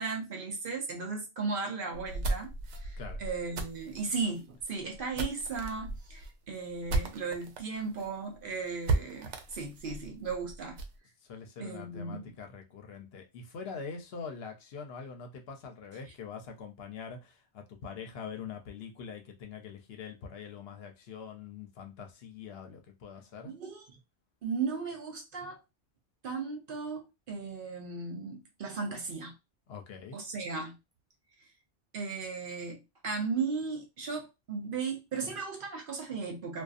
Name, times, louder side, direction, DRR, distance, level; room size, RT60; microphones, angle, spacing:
voice 1, 0.0-10.8 11.6-12.3 23.5-23.8 24.4-25.6 26.2-29.3 30.1-30.8 31.9-36.6, right 4 dB, 60° right, 0.7 m, -36 dB
sound 1, 1.9-7.6 8.0-8.1 8.3-8.4 8.8-11.0, right 2 dB, 85° right, 0.9 m, -35 dB
voice 2, 11.2-23.5 29.7-30.2, left 6 dB, 65° left, 0.8 m, -44 dB
2.5 x 2.3 x 2.4 m
omnidirectional pair, 1.2 m